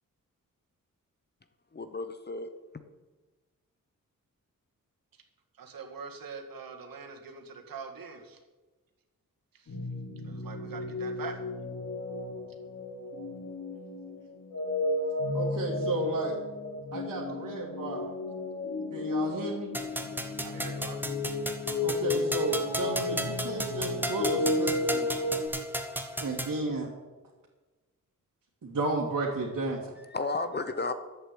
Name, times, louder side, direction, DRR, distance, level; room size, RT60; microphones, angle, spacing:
voice 1, 1.7-2.5 30.1-30.9, left 3 dB, 30° left, 10 dB, 0.9 m, -33 dB
voice 2, 5.6-8.4 10.3-11.4 20.4-21.0, right 5 dB, 90° right, 4 dB, 2.0 m, -43 dB
sound 1, 9.7-25.5, left 2 dB, 55° left, 4.5 m, -33 dB
voice 3, 15.3-16.3 16.9-18.0 18.9-19.8 21.8-25.1 26.2-26.9 28.6-29.9, right 2 dB, 60° right, -4 dB, 2.6 m, -33 dB
sound 2, 19.7-26.6, equal, 5° right, 1.4 m, -35 dB
11.5 x 8.3 x 8.6 m, 1.2 s
wide cardioid pair, 115°, 33 cm